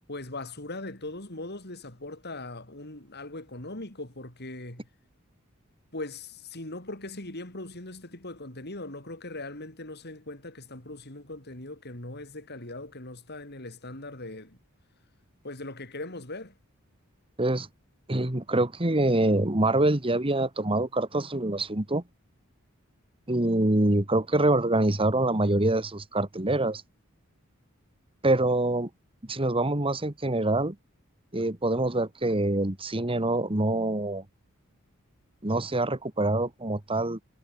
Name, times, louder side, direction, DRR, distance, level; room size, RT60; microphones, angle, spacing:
voice 1, 0.1-4.9 5.9-14.6 15.4-16.6, left 2 dB, 50° left, 5.9 m, -40 dB
voice 2, 18.1-22.0 23.3-26.8 28.2-28.9 29.3-30.8 31.3-34.2 35.4-37.2, right 2 dB, 25° right, 2.0 m, -25 dB
head